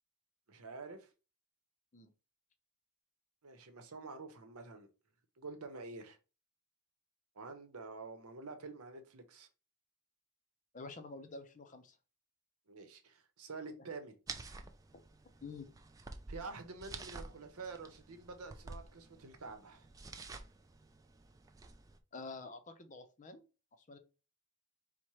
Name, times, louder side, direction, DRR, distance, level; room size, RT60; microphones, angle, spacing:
voice 1, 0.5-1.1 3.4-4.9 5.4-6.2 7.3-9.5 12.7-14.1 16.3-19.9, right 3 dB, 80° right, 0.8 m, -48 dB
voice 2, 10.7-12.0 15.4-15.7 22.1-23.4 23.8-24.0, left 3 dB, 35° left, 0.6 m, -48 dB
sound 1, 14.3-22.0, right 3 dB, 15° right, 0.3 m, -50 dB
4.3 x 2.1 x 4.6 m
head